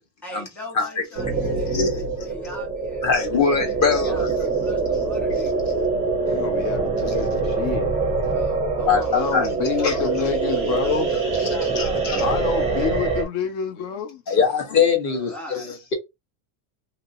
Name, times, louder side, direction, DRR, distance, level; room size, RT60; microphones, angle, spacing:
voice 1, 0.2-5.6 8.3-12.8 15.0-15.7, equal, 5° left, 1.0 m, -40 dB
sound 1, 1.2-13.2, right 4 dB, 15° right, 0.5 m, -24 dB
voice 2, 3.0-4.3 8.9-9.5 9.8-9.9 11.7-12.2 14.3-15.9, left 6 dB, 35° left, 1.0 m, -22 dB
voice 3, 6.3-7.9 9.1-11.2 12.2-14.2, left 8 dB, 60° left, 0.7 m, -27 dB
2.9 x 2.7 x 2.6 m
cardioid pair, 160°, 49 cm